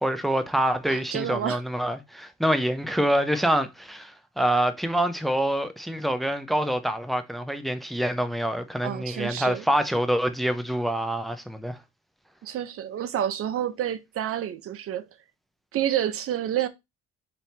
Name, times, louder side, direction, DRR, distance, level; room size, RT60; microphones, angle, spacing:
voice 1, 0.0-11.8, right 1 dB, ahead, 0.5 m, -26 dB
voice 2, 0.9-1.6 8.8-9.7 12.4-15.1 15.7-16.7, right 10 dB, 50° right, 0.7 m, -29 dB
4.3 x 2.8 x 3.3 m
cardioid pair, 100°, 29 cm